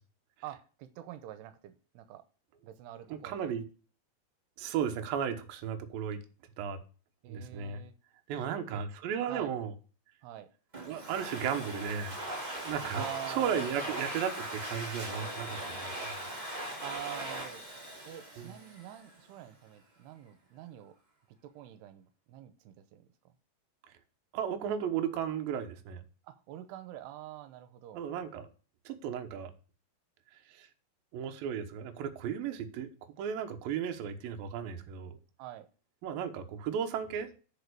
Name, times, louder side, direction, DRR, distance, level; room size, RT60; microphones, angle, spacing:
voice 1, 0.4-2.2 2.6-3.6 7.2-7.9 8.4-8.8 9.3-9.5 10.2-10.5 12.9-13.9 16.8-17.6 18.1-20.9 21.4-23.1 26.2-28.0 35.4-35.7, right 12 dB, 85° right, 11 dB, 2.8 m, -46 dB
voice 2, 3.1-3.6 4.6-6.2 6.6-6.8 7.3-7.8 8.3-9.7 10.9-12.1 12.6-16.1 18.4-18.5 24.3-26.0 27.9-28.5 28.9-29.5 30.5-30.7 31.1-32.9 33.2-35.2 36.0-37.3, right 8 dB, 70° right, 6 dB, 2.6 m, -35 dB
Domestic sounds home sounds, 10.7-19.2, right 1 dB, 40° right, 0.6 m, -40 dB
9.3 x 5.2 x 6.7 m, 0.37 s
omnidirectional pair, 4.7 m